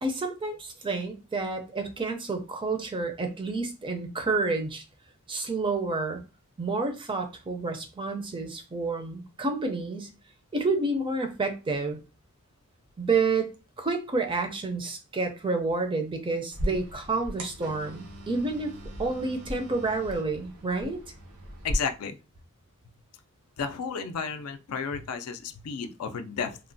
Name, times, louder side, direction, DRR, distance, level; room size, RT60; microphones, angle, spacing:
voice 1, 0.0-4.8 5.3-6.2 6.6-10.1 10.5-12.0 13.0-13.5 13.8-18.7 19.0-21.0, right 3 dB, 20° right, 0.4 m, -29 dB
sound 1, 16.5-21.7, equal, 85° right, 0.7 m, -38 dB
voice 2, 21.6-22.2 23.6-26.6, left 6 dB, 75° left, 0.4 m, -32 dB
3.0 x 2.1 x 2.6 m
head